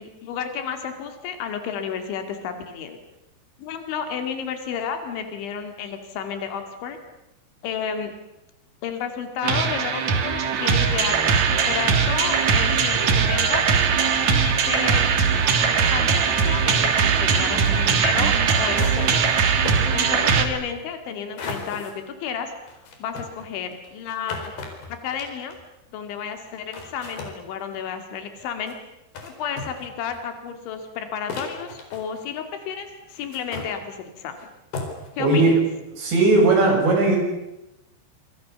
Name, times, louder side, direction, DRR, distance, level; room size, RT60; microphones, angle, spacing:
voice 1, 0.0-3.0 3.6-7.0 7.6-8.1 8.8-11.2 11.5-13.6 14.3-15.0 15.9-19.3 19.9-22.5 23.0-24.5 24.9-25.6 25.9-28.8 29.2-34.4 35.1-35.6, left 7 dB, 90° left, 7 dB, 4.6 m, -32 dB
sound 1, 9.4-20.5, right 6 dB, 50° right, 2.8 m, -20 dB
sound 2, 17.4-17.7 18.3-18.4 18.8-19.4 19.6-19.8 21.4-21.9 22.7-25.6 26.4-26.5 26.7-27.3 28.4-28.7 29.2-29.3 29.6-30.2 30.8-30.9 31.3-32.4 33.1-33.7 34.4-34.5 34.7-35.1, left 4 dB, 60° left, 6.0 m, -36 dB
voice 2, 35.2-35.5 36.0-37.2, right 2 dB, 75° right, 1 dB, 9.3 m, -17 dB
27.0 x 26.5 x 6.9 m, 0.92 s
omnidirectional pair, 5.2 m